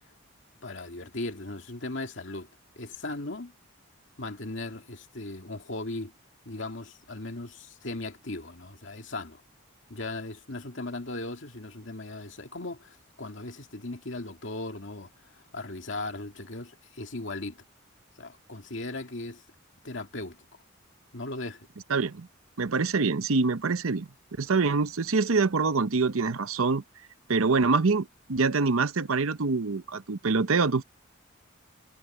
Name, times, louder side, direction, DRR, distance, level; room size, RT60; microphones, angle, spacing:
voice 1, 0.6-2.5 2.8-3.5 4.2-6.1 6.5-9.4 9.9-17.6 18.2-19.4 19.8-20.4 21.1-21.7, left 2 dB, 60° left, 2.4 m, -37 dB
voice 2, 21.9-22.3 22.6-24.1 24.4-26.8 27.3-30.8, right 4 dB, 85° right, 0.8 m, -25 dB
head